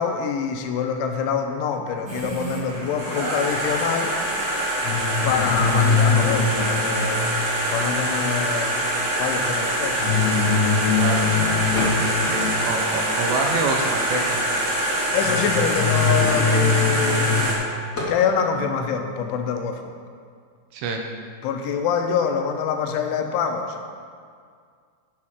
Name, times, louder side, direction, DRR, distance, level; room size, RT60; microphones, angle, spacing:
voice 1, 0.0-4.1 5.2-7.4 7.7-10.0 15.1-17.5 18.1-19.8 21.4-23.8, left 7 dB, 85° left, 5 dB, 3.2 m, -25 dB
sound 1, 2.1-17.5, right 1 dB, 55° right, 3.2 m, -25 dB
sound 2, 4.8-8.4 10.0-13.1 15.2-17.4, left 5 dB, 55° left, 2.7 m, -23 dB
voice 2, 11.0-11.3 11.7-14.4 20.7-21.0, right 3 dB, 80° right, 3 dB, 2.8 m, -27 dB
sound 3, 11.7-12.3 12.7-13.9 14.5-14.6 14.9-17.1 17.9-18.2, left 1 dB, 70° left, 0.7 m, -34 dB
8.4 x 7.4 x 6.4 m, 2.1 s
omnidirectional pair, 5.4 m